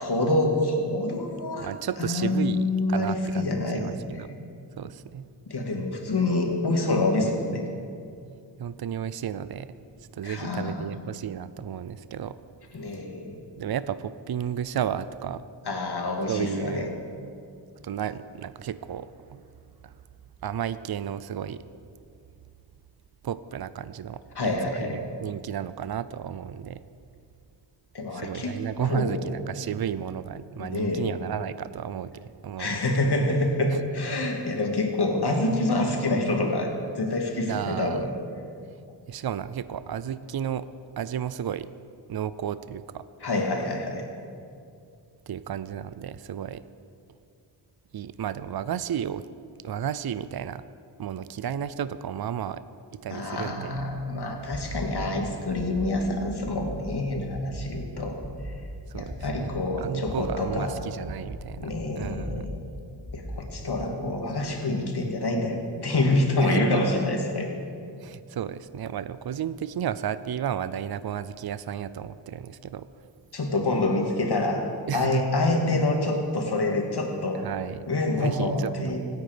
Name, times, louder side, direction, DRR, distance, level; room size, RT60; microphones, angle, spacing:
voice 1, 0.0-1.7 2.0-4.0 5.5-7.7 10.2-10.8 12.7-13.4 15.7-16.9 24.4-25.0 27.9-29.7 30.6-31.0 32.6-38.1 43.2-44.1 53.1-58.5 58.9-60.8 61.6-62.6 63.1-67.5 73.3-77.4 77.9-79.0, left 2 dB, 60° left, 2 dB, 2.3 m, -27 dB
voice 2, 1.6-4.3 4.8-5.3 8.6-9.7 10.1-12.4 13.6-15.5 16.3-17.0 17.8-19.4 19.8-19.9 20.4-21.6 23.2-26.8 28.1-32.8 37.5-38.1 39.1-40.7 41.0-41.7 42.1-43.0 45.3-46.6 47.9-49.3 49.6-50.6 51.0-52.6 52.9-53.8 58.9-61.7 62.0-62.5 66.4-66.8 68.0-72.9 74.9-75.2 77.4-77.8 78.2-79.0, right 9 dB, 60° right, 14 dB, 0.6 m, -33 dB
sound 1, 54.5-54.9 55.5-56.0 56.4-56.8 57.3-57.7 58.2-58.6 59.0-59.7 60.0-60.5 61.0-61.4 62.0-62.4 63.0-63.5, left 2 dB, 5° left, 5.0 m, -39 dB
25.5 x 9.3 x 5.1 m, 2.4 s
wide cardioid pair, 100°, 44 cm